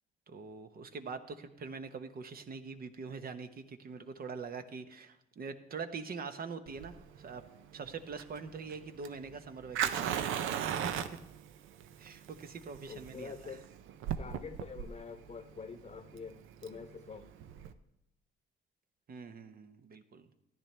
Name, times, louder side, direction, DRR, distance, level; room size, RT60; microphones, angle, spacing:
voice 1, 0.3-7.4 7.7-10.4 10.7-10.9 12.0-13.6 19.1-20.3, right 5 dB, 50° right, 9 dB, 1.0 m, -44 dB
Fire, 6.7-17.7, right 9 dB, 90° right, 0.6 m, -38 dB
voice 2, 12.9-13.6 14.2-16.4 16.6-17.2, left 5 dB, 35° left, 10 dB, 0.9 m, -46 dB
14.0 x 10.5 x 3.3 m, 0.87 s
cardioid pair, 90°, 20 cm